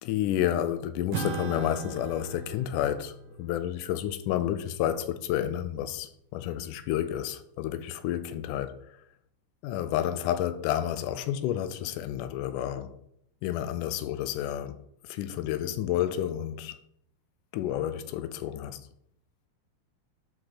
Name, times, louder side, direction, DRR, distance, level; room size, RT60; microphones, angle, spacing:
voice 1, 0.0-8.8 9.6-13.0 13.4-16.8 17.5-18.8, left 11 dB, 80° left, 2.0 m, -30 dB
Acoustic guitar / Strum, 1.1-5.9, right 6 dB, 70° right, 1.8 m, -40 dB
11.5 x 5.2 x 4.3 m
omnidirectional pair, 3.9 m